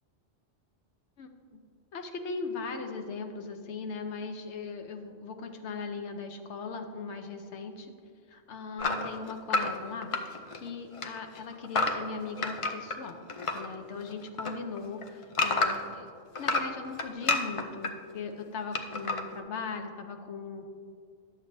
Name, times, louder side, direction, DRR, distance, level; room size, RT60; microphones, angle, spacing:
voice 1, 1.2-1.6 1.9-7.9 8.3-13.3 13.5-16.1 16.4-20.7, left 4 dB, 75° left, 5 dB, 1.0 m, -39 dB
sound 1, 8.8-10.7 10.9-13.7 14.0-16.0 16.4-17.9 18.7-19.2, left 3 dB, 50° left, 0.3 m, -30 dB
11.0 x 7.2 x 2.6 m, 2.2 s
omnidirectional pair, 1.2 m